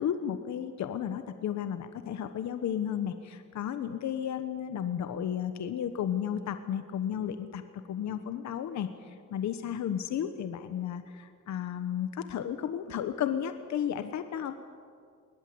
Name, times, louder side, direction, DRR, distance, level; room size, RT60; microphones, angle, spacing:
voice 1, 0.0-7.6 7.9-14.5, left 9 dB, 65° left, 9 dB, 1.2 m, -33 dB
22.0 x 18.5 x 7.9 m, 2.2 s
cardioid pair, 90°, 30 cm